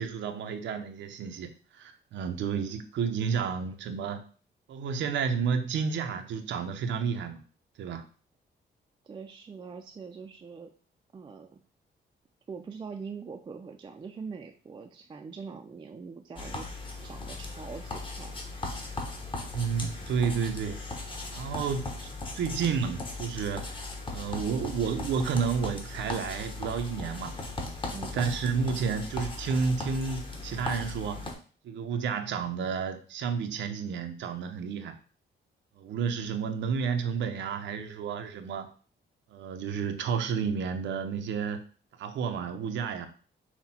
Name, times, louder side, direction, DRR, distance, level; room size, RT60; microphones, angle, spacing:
voice 1, 0.0-4.2 4.7-7.4 7.8-8.0 19.5-20.8 21.3-22.1 22.3-23.7 24.1-27.4 27.9-31.3 31.6-35.0 35.8-38.7 39.3-41.6 42.0-43.1, right 6 dB, 85° right, 7 dB, 0.6 m, -31 dB
voice 2, 9.0-10.7 11.1-11.6 12.5-16.7 17.0-18.3 27.9-28.4, right 5 dB, 25° right, 4 dB, 0.4 m, -43 dB
Pencil Scribbles, 16.4-31.3, left 2 dB, 25° left, 0.9 m, -38 dB
5.7 x 2.1 x 4.2 m, 0.39 s
cardioid pair, 125°, 19 cm